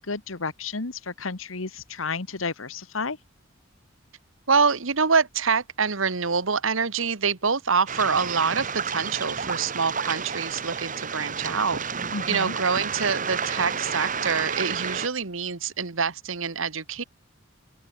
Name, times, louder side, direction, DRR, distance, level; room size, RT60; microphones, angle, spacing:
voice 1, 0.0-3.2 12.1-12.5, left 4 dB, 85° left, 1.6 m, -32 dB
voice 2, 4.5-11.8 12.3-17.0, right 5 dB, 80° right, 1.4 m, -25 dB
Waves surf, 7.9-15.1, right 6 dB, 40° right, 2.3 m, -31 dB
open air
head